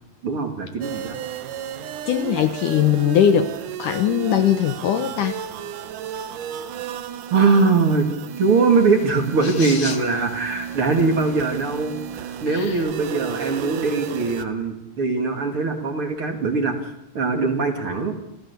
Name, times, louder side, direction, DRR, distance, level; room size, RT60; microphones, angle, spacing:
voice 1, 0.2-1.2 7.3-8.1 8.4-16.8 17.1-18.2, right 4 dB, 40° right, 5 dB, 2.5 m, -21 dB
sound 1, 0.8-14.5, right 9 dB, 65° right, 2.5 m, -33 dB
voice 2, 2.1-3.5 3.8-5.4 9.6-10.0 12.5-12.8, left 9 dB, 70° left, 10 dB, 2.2 m, -20 dB
27.5 x 16.0 x 8.2 m, 0.83 s
omnidirectional pair, 4.5 m